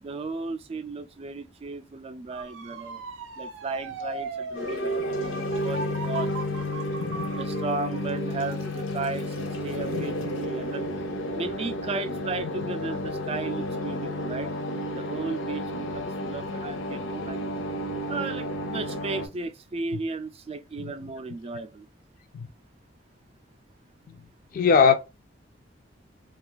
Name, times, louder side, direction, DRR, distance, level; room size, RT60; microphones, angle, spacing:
voice 1, 0.0-3.0 3.4-6.3 7.4-10.9 11.3-14.5 14.9-17.4 18.1-21.8, right 3 dB, 30° right, 0.3 m, -35 dB
Motor vehicle (road) / Siren, 2.3-11.2 11.6-12.1, right 4 dB, 85° right, 0.6 m, -40 dB
sound 1, 4.5-19.3, left 1 dB, 85° left, 0.7 m, -31 dB
voice 2, 7.0-7.4 9.9-10.1 19.9-20.0 20.8-20.9 22.3-22.5 24.5-25.0, left 6 dB, 50° left, 0.3 m, -22 dB
2.4 x 2.3 x 3.8 m
head